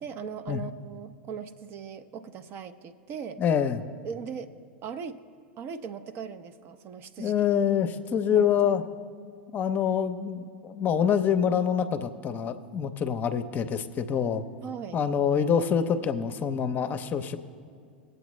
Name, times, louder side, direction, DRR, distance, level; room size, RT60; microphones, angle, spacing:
voice 1, 0.0-3.4 4.0-4.5 4.8-5.2 5.6-7.4 8.4-8.5 14.6-15.0, right 6 dB, 40° right, 9 dB, 0.6 m, -39 dB
voice 2, 3.4-3.8 7.2-8.8 9.5-14.4 14.9-17.4, left 8 dB, 35° left, 9 dB, 0.6 m, -26 dB
19.0 x 7.9 x 3.2 m, 2.2 s
hypercardioid pair, 90°, 6 cm